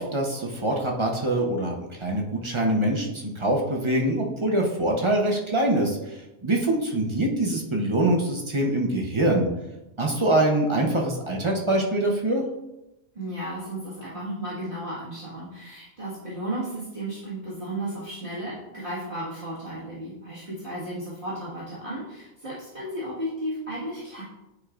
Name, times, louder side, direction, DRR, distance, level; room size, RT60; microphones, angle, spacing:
voice 1, 0.0-6.0 6.4-9.5 10.0-12.4, right 1 dB, 25° right, -1 dB, 0.8 m, -24 dB
voice 2, 13.2-24.2, right 1 dB, 40° right, -9 dB, 1.8 m, -34 dB
9.7 x 4.6 x 2.5 m, 0.96 s
omnidirectional pair, 1.3 m